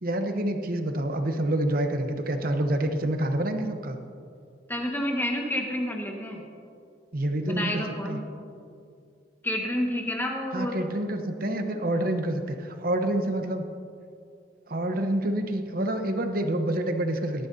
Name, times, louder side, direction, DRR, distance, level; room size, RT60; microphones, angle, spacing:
voice 1, 0.0-4.0 7.1-8.2 10.5-13.7 14.7-17.5, right 1 dB, 50° right, 6 dB, 1.0 m, -27 dB
voice 2, 4.7-6.4 7.5-8.2 9.4-10.8, left 1 dB, 10° left, 0 dB, 1.6 m, -29 dB
18.5 x 13.0 x 2.8 m, 2.4 s
head